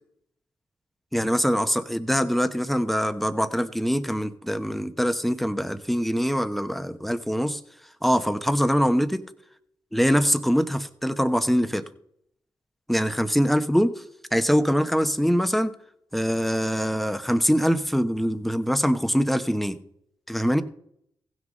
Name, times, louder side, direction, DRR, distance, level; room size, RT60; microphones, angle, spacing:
voice 1, 1.1-7.6 8.0-9.2 9.9-11.8 12.9-13.9 14.3-15.7 16.1-19.8 20.3-20.6, equal, ahead, 10 dB, 1.1 m, -23 dB
15.5 x 6.4 x 5.3 m, 0.71 s
supercardioid pair, 45°, 9 cm